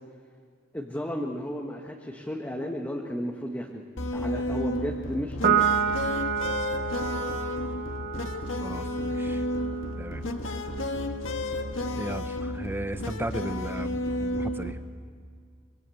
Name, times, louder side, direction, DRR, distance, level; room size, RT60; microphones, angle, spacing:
voice 1, 0.7-3.8 4.1-5.8, equal, 10° left, 0 dB, 1.4 m, -33 dB
sound 1, 4.0-14.7, left 1 dB, 70° left, 1.6 m, -32 dB
Piano, 5.4-12.1, right 7 dB, 50° right, 1.1 m, -30 dB
voice 2, 8.6-9.4 10.0-10.2 12.0-14.8, right 1 dB, 10° right, 10 dB, 0.9 m, -36 dB
24.5 x 24.5 x 7.9 m, 2.1 s
head